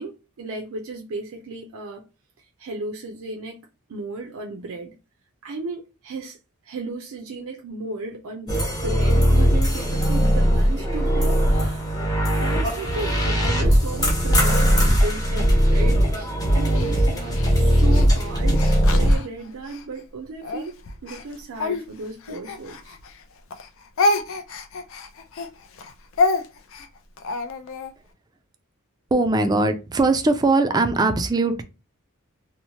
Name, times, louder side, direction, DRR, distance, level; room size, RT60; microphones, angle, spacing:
voice 1, 0.0-2.0 2.6-3.6 3.9-4.9 5.4-6.4 6.6-8.6 8.8-11.8 12.3-20.7 21.0-23.0, right 2 dB, 75° right, 0.5 m, -34 dB
sound 1, 8.5-19.2, equal, 20° left, 0.7 m, -19 dB
Speech, 16.7-19.8 20.4-23.2 23.5-27.9, left 2 dB, 65° left, 0.4 m, -28 dB
voice 2, 29.1-31.6, right 2 dB, 20° right, 0.3 m, -20 dB
3.0 x 2.0 x 2.7 m
head